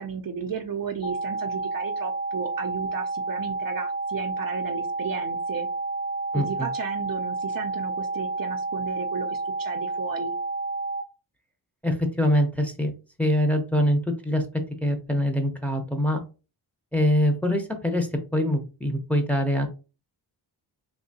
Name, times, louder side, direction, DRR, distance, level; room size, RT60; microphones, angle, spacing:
voice 1, 0.0-5.7 6.3-10.3, right 6 dB, 50° right, 5 dB, 0.5 m, -34 dB
sound 1, 1.0-11.0, right 3 dB, 30° left, 1.2 m, -30 dB
voice 2, 6.3-6.7 11.8-12.9 13.2-14.4 14.8-16.2 16.9-19.7, left 1 dB, 5° left, 3 dB, 0.8 m, -24 dB
3.6 x 2.8 x 2.7 m, 0.32 s
cardioid pair, 70°, 45 cm